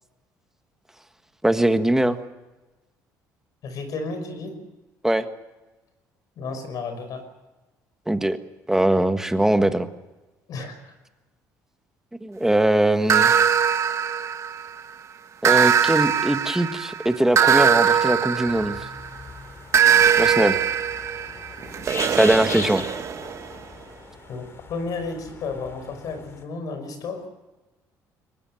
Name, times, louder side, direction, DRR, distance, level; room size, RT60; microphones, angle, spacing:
voice 1, 1.4-2.2 5.0-5.2 8.1-8.4 8.7-9.9 12.2-13.3 15.4-18.8 20.2-20.6 22.1-22.8, right 1 dB, 5° right, 8 dB, 1.6 m, -21 dB
voice 2, 3.6-4.6 6.4-7.2 10.5-11.0 24.3-24.4 24.7-27.2, left 4 dB, 60° left, 8 dB, 5.9 m, -32 dB
sound 1, 13.1-14.8 15.4-19.1 19.7-23.5, right 8 dB, 45° right, 1.5 m, -21 dB
sound 2, 18.5-26.4, left 4 dB, 35° left, 3.0 m, -39 dB
23.0 x 19.5 x 7.8 m, 1.1 s
cardioid pair, 110°, 7 cm